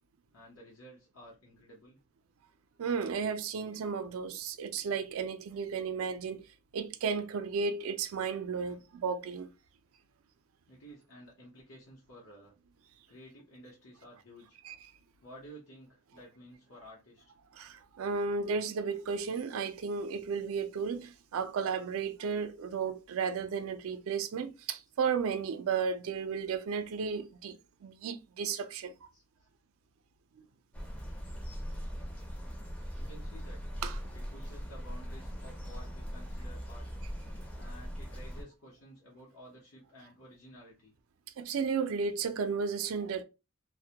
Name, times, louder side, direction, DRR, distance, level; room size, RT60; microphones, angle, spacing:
voice 1, 0.3-2.0 10.7-12.5 13.1-14.6 15.2-17.3 29.1-29.2 30.7-30.8 32.9-33.6 34.1-37.0 37.6-40.9, equal, 80° left, 0.8 m, -53 dB
voice 2, 2.8-9.5 14.6-14.8 17.5-28.9 33.8-34.0 41.4-43.2, right 5 dB, 85° right, 0.4 m, -34 dB
sound 1, 30.7-38.4, equal, 5° left, 0.4 m, -40 dB
2.1 x 2.1 x 2.7 m
head